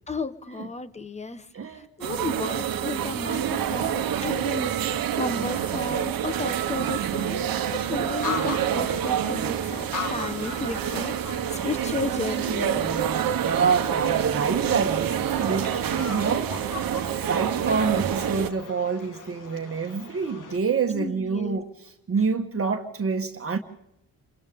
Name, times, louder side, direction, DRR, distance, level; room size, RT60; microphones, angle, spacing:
voice 1, 0.1-1.5 1.7-7.4 7.7-12.9 20.9-21.6, left 3 dB, 20° left, 1.2 m, -33 dB
voice 2, 1.5-1.9 12.7-23.6, right 5 dB, 40° right, 1.5 m, -27 dB
sound 1, 2.0-18.5, right 9 dB, 70° right, 1.3 m, -27 dB
sound 2, 7.8-20.6, left 5 dB, 60° left, 2.0 m, -39 dB
28.0 x 25.0 x 3.7 m
cardioid pair, 115°, 36 cm